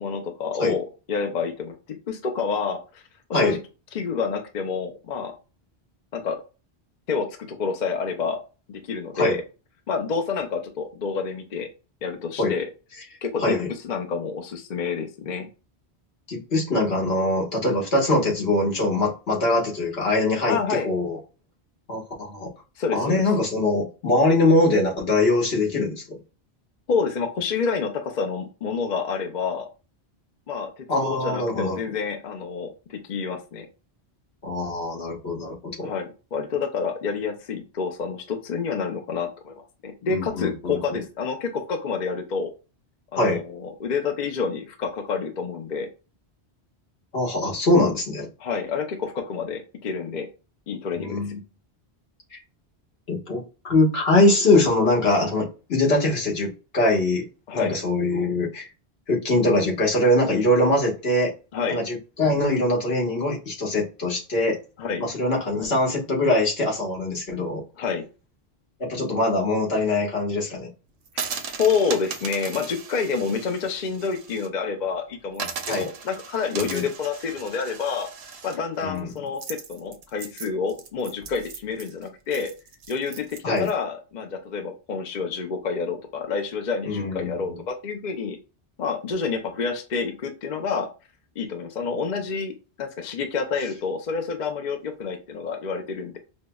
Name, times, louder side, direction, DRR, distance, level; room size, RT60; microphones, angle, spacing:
voice 1, 0.0-1.7 2.1-3.0 3.3-3.6 3.9-5.3 6.1-6.4 7.1-8.4 8.7-9.4 9.9-11.7 12.0-12.7 13.2-15.5 20.5-20.9 22.8-23.3 26.9-29.7 30.5-33.7 35.8-42.5 43.1-45.9 48.4-50.3 50.7-51.2 57.5-57.8 61.5-61.8 64.8-65.0 67.8-68.0 71.2-71.3 71.6-78.1 78.4-82.5 82.9-88.4 88.8-90.9 91.4-92.5 92.8-96.2, left 5 dB, 50° left, 5 dB, 0.6 m, -28 dB
voice 2, 16.3-20.6 20.8-21.2 21.9-22.5 22.9-26.0 30.9-31.8 34.4-35.9 40.1-41.0 43.1-43.4 47.1-48.3 51.0-51.4 52.3-52.4 53.1-57.3 57.5-58.7 59.1-61.3 61.7-64.6 65.0-67.6 68.8-70.7 75.7-75.9 76.5-76.8 78.8-79.1 83.4-83.7 86.8-87.6, left 2 dB, 70° left, -2 dB, 1.5 m, -22 dB
sound 1, 71.1-74.5 74.8-74.9 75.3-83.7, right 6 dB, 70° right, 0.8 m, -37 dB
5.2 x 2.0 x 2.2 m, 0.32 s
omnidirectional pair, 1.1 m